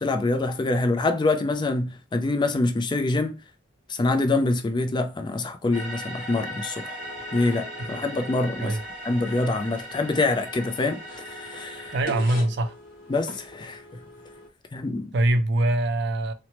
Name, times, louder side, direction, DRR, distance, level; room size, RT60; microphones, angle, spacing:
voice 1, 0.0-3.3 3.9-7.0 7.3-8.8 9.0-12.0 13.1-14.0 14.7-15.1, left 2 dB, 25° left, 0.3 m, -25 dB
sound 1, 5.7-12.0, equal, 5° right, 1.0 m, -38 dB
sound 2, 7.0-14.5, left 1 dB, 40° left, 1.0 m, -43 dB
voice 2, 11.9-12.7 15.1-16.3, right 1 dB, 60° right, 0.4 m, -23 dB
2.9 x 2.0 x 2.8 m
head